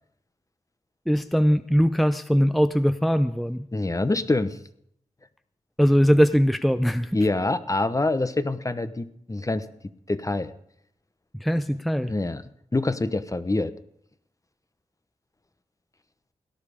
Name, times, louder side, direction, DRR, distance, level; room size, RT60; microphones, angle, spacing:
voice 1, 1.1-3.7 5.8-7.2 11.3-12.1, equal, ahead, 11 dB, 0.6 m, -21 dB
voice 2, 3.7-4.6 7.1-9.7 10.1-10.5 12.1-12.4 12.7-13.7, left 2 dB, 25° left, 13 dB, 0.9 m, -25 dB
17.5 x 11.0 x 5.0 m, 0.71 s
cardioid pair, 50°, 12 cm